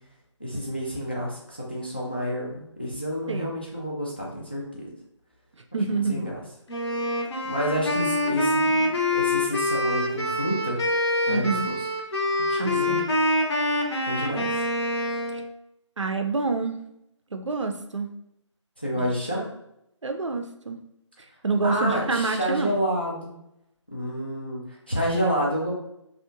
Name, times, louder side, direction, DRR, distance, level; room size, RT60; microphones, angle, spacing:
voice 1, 0.4-4.9 5.9-6.4 7.4-10.8 11.3-11.8 12.4-13.1 14.1-14.6 18.8-19.5 21.6-23.3 23.9-25.7, equal, 20° left, -4 dB, 0.3 m, -29 dB
voice 2, 5.7-6.3 11.3-11.7 12.6-13.1 15.3-15.4 16.0-16.8 17.3-18.1 18.9-19.1 19.3-19.4 20.0-20.8 21.4-22.8, right 3 dB, 70° right, 5 dB, 0.4 m, -27 dB
Wind instrument woodwind instrument, 6.7-15.5, left 1 dB, 55° left, 0.7 m, -25 dB
2.7 x 2.1 x 2.5 m, 0.81 s
figure-of-eight pair, 155°, 16 cm